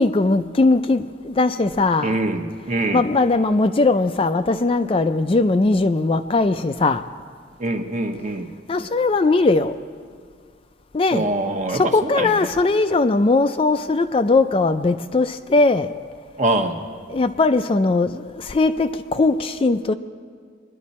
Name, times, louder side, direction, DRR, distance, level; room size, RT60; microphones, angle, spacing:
voice 1, 0.0-2.2 2.9-7.0 8.7-9.8 10.9-11.3 11.7-16.0 17.1-19.9, left 3 dB, 30° left, 10 dB, 0.3 m, -19 dB
voice 2, 2.0-3.0 7.6-8.5 11.1-12.5 16.4-16.8, right 2 dB, 40° right, 4 dB, 1.0 m, -24 dB
22.5 x 11.0 x 4.2 m, 2.1 s
head